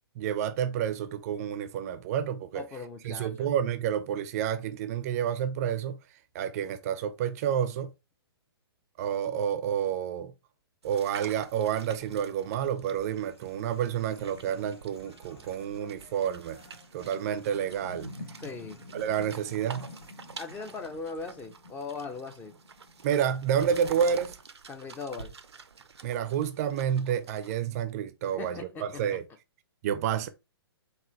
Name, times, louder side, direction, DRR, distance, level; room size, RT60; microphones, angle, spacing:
voice 1, 0.2-2.6 3.0-6.0 6.3-7.9 9.0-10.3 10.8-16.6 16.9-18.1 18.9-19.9 23.0-24.4 26.0-29.3 29.8-30.3, right 9 dB, 35° right, 0.5 m, -29 dB
voice 2, 2.5-3.5 18.4-18.8 20.4-22.5 24.7-25.3 28.3-29.2, left 4 dB, 15° left, 0.5 m, -39 dB
sound 1, 10.8-27.6, right 5 dB, 85° right, 0.5 m, -49 dB
Human voice, 12.9-20.9, left 3 dB, 70° left, 1.7 m, -58 dB
sound 2, 13.7-23.8, left 2 dB, 50° left, 1.2 m, -50 dB
4.7 x 2.7 x 3.1 m
figure-of-eight pair, 125°, 13 cm